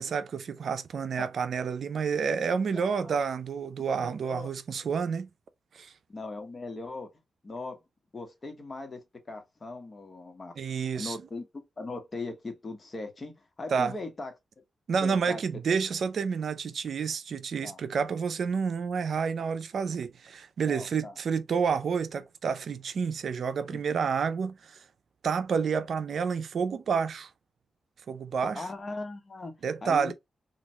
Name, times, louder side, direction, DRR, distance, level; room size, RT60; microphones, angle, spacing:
voice 1, 0.0-5.3 5.7-5.9 10.6-11.2 13.7-14.0 14.9-24.8 25.2-27.3 28.1-28.6 29.6-30.1, right 6 dB, 70° right, 0.5 m, -29 dB
voice 2, 2.7-3.2 3.8-4.5 6.1-7.1 7.4-7.8 8.1-9.0 9.3-10.5 10.9-13.3 13.6-14.3 15.0-15.4 17.6-17.8 20.7-21.1 23.7-23.8 28.6-29.5 29.8-30.1, left 2 dB, 40° left, 1.2 m, -39 dB
3.2 x 2.5 x 2.8 m
cardioid pair, 65°, 0 cm